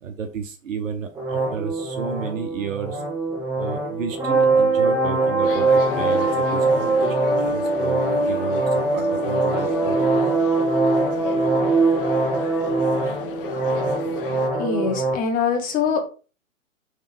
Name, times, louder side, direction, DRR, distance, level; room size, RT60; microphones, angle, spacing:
voice 1, 0.0-3.0 3.6-10.1, right 6 dB, 65° right, 5 dB, 0.9 m, -32 dB
sound 1, 1.2-15.1, right 3 dB, 10° right, 0.8 m, -22 dB
sound 2, 5.4-14.5, left 8 dB, 45° left, 0.5 m, -34 dB
voice 2, 14.5-16.0, left 6 dB, 20° left, 5 dB, 0.9 m, -23 dB
3.5 x 3.3 x 3.4 m, 0.35 s
figure-of-eight pair, 120°, 41 cm